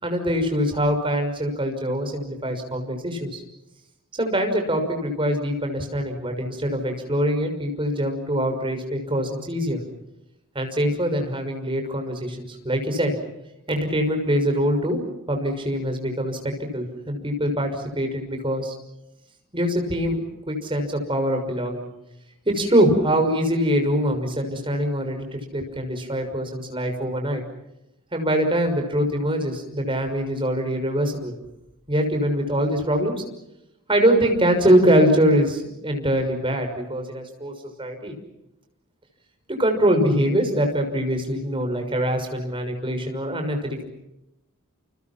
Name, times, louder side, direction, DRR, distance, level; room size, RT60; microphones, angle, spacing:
voice 1, 0.0-3.4 4.2-9.8 10.5-13.1 13.7-15.0 15.3-18.7 19.5-20.2 20.5-21.9 22.5-27.4 28.1-31.3 31.9-33.2 33.9-38.2 39.5-43.8, equal, 25° right, 4 dB, 6.2 m, -23 dB
30.0 x 29.5 x 6.0 m, 0.89 s
head